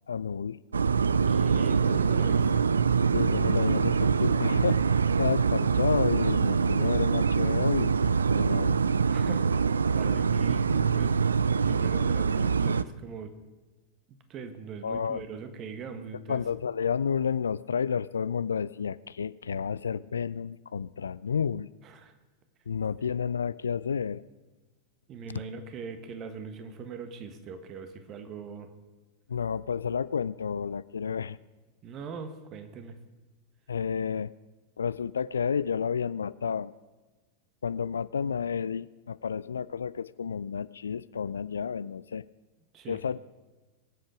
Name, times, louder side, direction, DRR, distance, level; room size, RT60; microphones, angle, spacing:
voice 1, 0.1-0.6 3.1-8.0 8.3-8.8 14.8-15.2 16.3-21.7 22.7-24.2 29.3-31.4 33.7-34.3 34.8-36.7 37.6-42.2 42.9-43.2, left 6 dB, 70° left, 19 dB, 0.3 m, -31 dB
sound 1, 0.7-12.8, right 5 dB, 75° right, 0.3 m, -24 dB
voice 2, 1.3-2.7 9.1-13.3 14.1-16.5 21.8-22.1 25.1-28.7 31.8-33.0 42.7-43.0, right 5 dB, 35° right, 9 dB, 1.4 m, -41 dB
22.5 x 7.8 x 4.9 m, 1.3 s
figure-of-eight pair, 90°, 0 cm